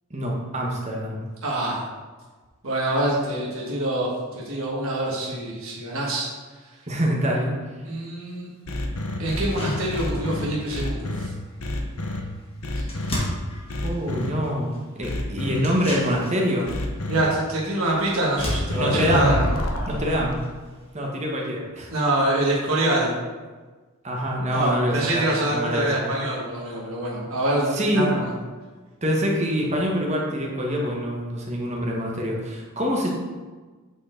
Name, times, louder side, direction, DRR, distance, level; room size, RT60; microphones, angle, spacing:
voice 1, 0.1-1.2 6.9-7.5 13.8-16.7 18.7-19.4 19.9-20.4 20.9-21.9 24.0-26.2 27.7-28.1 29.0-33.1, equal, 30° right, -1 dB, 1.2 m, -25 dB
voice 2, 1.4-1.8 2.6-4.1 4.3-6.3 7.8-8.5 9.2-11.3 12.7-12.8 17.1-19.3 21.9-23.2 24.5-28.3, right 1 dB, 70° right, -4 dB, 1.5 m, -25 dB
sound 1, 8.3-8.4 8.8-8.9 9.3-20.9, equal, 25° left, 1.6 m, -38 dB
sound 2, 8.7-11.3 11.6-12.2 12.6-13.2 13.7-14.3 15.0-15.6 16.7-17.2 18.4-20.3, left 1 dB, 75° left, 0.9 m, -28 dB
8.5 x 4.5 x 3.8 m, 1.3 s
head